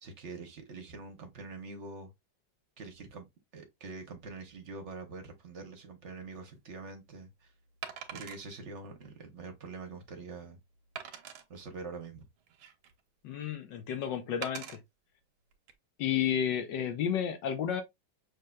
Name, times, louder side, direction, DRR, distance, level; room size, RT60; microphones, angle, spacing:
voice 1, 0.0-2.1 2.8-7.5 8.1-10.6 11.5-12.2, right 3 dB, 45° right, 1.0 m, -45 dB
Wood, 6.2-6.4 7.8-8.4 9.0-9.1 9.7-9.8 11.0-11.4 12.2-13.0 14.4-14.8 15.5-15.7, right 8 dB, 85° right, 1.7 m, -43 dB
voice 2, 13.2-14.8 16.0-17.8, left 9 dB, 70° left, 1.3 m, -31 dB
6.4 x 2.9 x 2.3 m
omnidirectional pair, 2.2 m